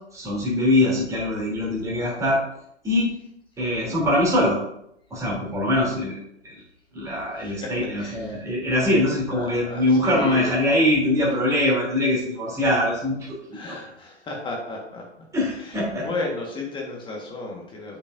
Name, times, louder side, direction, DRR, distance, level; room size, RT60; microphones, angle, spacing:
voice 1, 0.1-2.4 2.8-3.1 3.6-4.6 5.1-6.2 6.4-6.5 6.9-13.8 15.3-16.1, left 1 dB, 10° right, -4 dB, 3.0 m, -23 dB
voice 2, 7.3-7.7 8.0-8.4 9.3-10.5 13.5-15.0 15.5-18.0, left 3 dB, 15° left, -1 dB, 1.4 m, -33 dB
8.5 x 7.4 x 2.6 m, 0.74 s
figure-of-eight pair, 125°, 35 cm